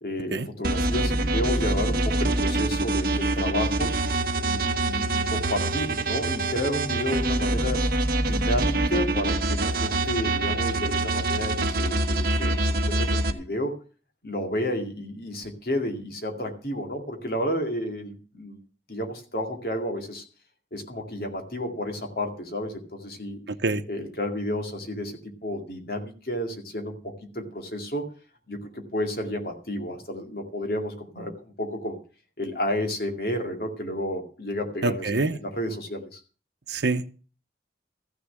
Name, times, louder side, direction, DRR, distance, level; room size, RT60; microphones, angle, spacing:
voice 1, 0.0-4.0 4.4-7.9 8.2-12.6 12.9-13.7 14.2-18.6 18.9-20.2 20.7-23.4 23.9-28.0 28.5-32.0 32.4-36.2, left 1 dB, 55° left, 2.3 m, -31 dB
sound 1, 0.6-13.3, right 2 dB, 55° right, 1.2 m, -25 dB
voice 2, 23.5-23.8 34.8-35.4 36.7-37.1, right 3 dB, 80° right, 0.9 m, -26 dB
14.5 x 6.8 x 7.5 m
head